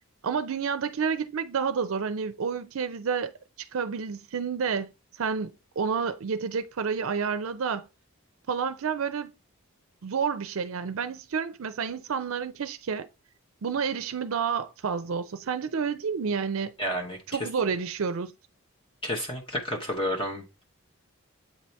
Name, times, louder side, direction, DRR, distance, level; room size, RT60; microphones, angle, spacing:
voice 1, 0.2-4.9 5.2-7.9 8.5-9.3 10.0-13.1 13.6-16.7 17.3-18.3, right 6 dB, 70° right, 0.5 m, -30 dB
voice 2, 16.8-17.2 19.0-20.4, equal, 25° left, 0.9 m, -30 dB
7.9 x 2.8 x 4.4 m
head